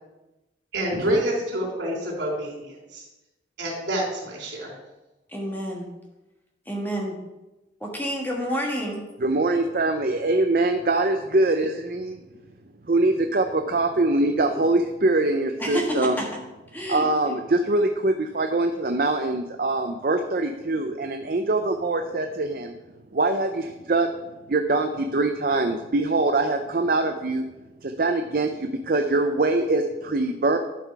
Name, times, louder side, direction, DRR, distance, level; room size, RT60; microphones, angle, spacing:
voice 1, 0.7-3.0 3.6-4.7 14.5-14.6, right 1 dB, 80° right, -2 dB, 3.5 m, -27 dB
voice 2, 5.3-5.9 6.7-7.2 7.8-9.0 15.6-16.4 16.7-17.1, equal, 10° left, -1 dB, 1.6 m, -29 dB
voice 3, 9.2-12.2 12.9-16.2 16.9-22.7 23.1-24.1 24.5-27.4 27.8-30.6, right 2 dB, 50° right, 5 dB, 0.5 m, -23 dB
11.5 x 5.7 x 4.7 m, 1.0 s
head